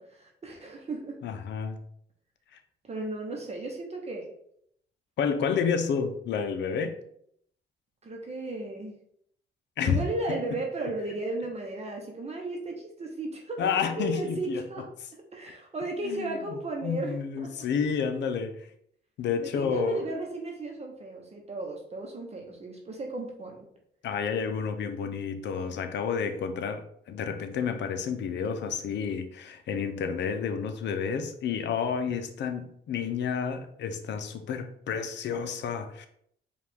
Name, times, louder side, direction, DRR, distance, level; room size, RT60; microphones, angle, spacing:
voice 1, 0.0-1.2 2.8-4.3 8.0-8.9 9.8-14.9 15.1-17.5 19.4-23.6, right 2 dB, 30° right, 1 dB, 0.8 m, -35 dB
voice 2, 1.2-1.8 2.5-2.6 5.2-7.0 9.8-10.0 10.3-10.6 13.6-14.6 16.0-16.3 16.8-18.7 19.2-20.0 24.0-36.1, left 6 dB, 65° left, 8 dB, 0.6 m, -30 dB
4.7 x 2.4 x 3.5 m, 0.69 s
cardioid pair, 90°, 20 cm